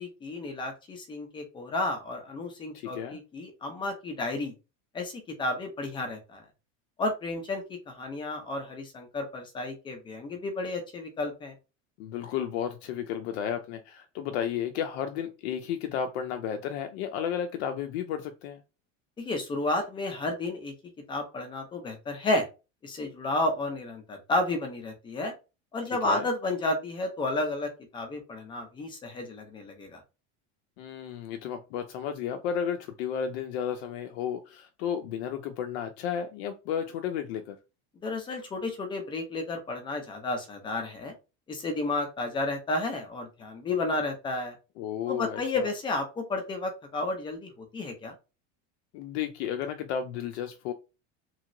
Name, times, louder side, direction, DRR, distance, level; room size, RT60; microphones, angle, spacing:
voice 1, 0.0-4.5 4.9-6.4 7.0-11.5 19.2-20.7 21.1-22.5 22.8-25.3 25.7-30.0 38.0-41.1 41.5-44.5 45.1-48.1, left 2 dB, 15° left, 0.5 m, -32 dB
voice 2, 2.7-3.2 12.0-18.6 25.9-26.2 30.8-37.6 44.8-45.7 48.9-50.7, left 8 dB, 65° left, 0.5 m, -33 dB
3.1 x 2.8 x 2.5 m
cardioid pair, 175°, 35 cm